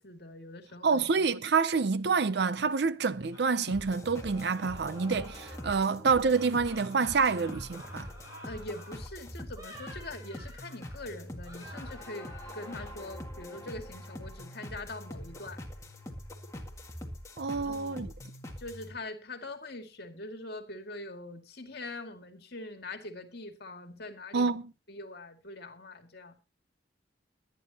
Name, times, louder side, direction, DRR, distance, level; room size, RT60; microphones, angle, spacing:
voice 1, 0.0-1.3 8.4-15.6 17.5-18.1 18.6-24.5 24.9-26.3, left 2 dB, 55° left, 2.2 m, -43 dB
voice 2, 0.8-8.1 17.4-18.1 24.3-24.7, right 5 dB, 60° right, 0.6 m, -27 dB
sound 1, 3.3-5.9 6.2-9.1 9.5-11.1 11.4-12.9, equal, 20° right, 6.9 m, -51 dB
sound 2, 3.7-18.9, left 1 dB, 15° left, 2.0 m, -44 dB
22.0 x 9.9 x 2.9 m
head